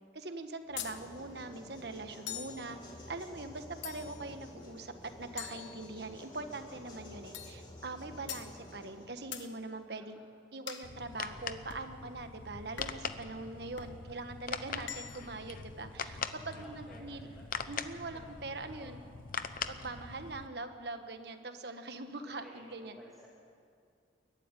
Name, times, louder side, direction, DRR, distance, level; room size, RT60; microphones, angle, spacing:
voice 1, 0.1-2.8 3.1-10.2 10.5-17.3 17.7-19.0 19.7-23.0, right 2 dB, 55° right, 7 dB, 1.4 m, -42 dB
sound 1, 0.7-9.1, left 1 dB, 25° left, 3.0 m, -51 dB
sound 2, 0.8-1.0 2.3-2.6 3.8-4.3 5.4-6.3 7.3-7.6 8.3-8.5 9.3-9.5 10.7-10.9 11.7-11.9 12.8-13.1 13.8-14.0 14.8-15.4, left 9 dB, 75° left, 1.3 m, -43 dB
sound 3, 10.8-20.5, left 5 dB, 45° left, 0.8 m, -42 dB
voice 2, 13.7-14.2 16.5-19.5 22.1-23.3, right 1 dB, ahead, -5 dB, 2.3 m, -57 dB
22.5 x 13.5 x 9.9 m, 2.4 s
head